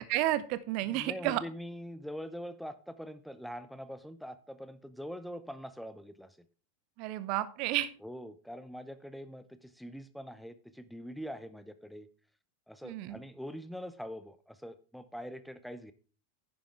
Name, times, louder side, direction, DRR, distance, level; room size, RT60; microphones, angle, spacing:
voice 1, 0.0-1.4 7.0-7.9 12.8-13.2, right 15 dB, 45° right, 16 dB, 0.8 m, -31 dB
voice 2, 0.8-6.4 8.0-12.1 12.7-15.9, equal, ahead, 12 dB, 0.7 m, -43 dB
10.5 x 9.6 x 3.5 m, 0.36 s
figure-of-eight pair, 90°, 0 cm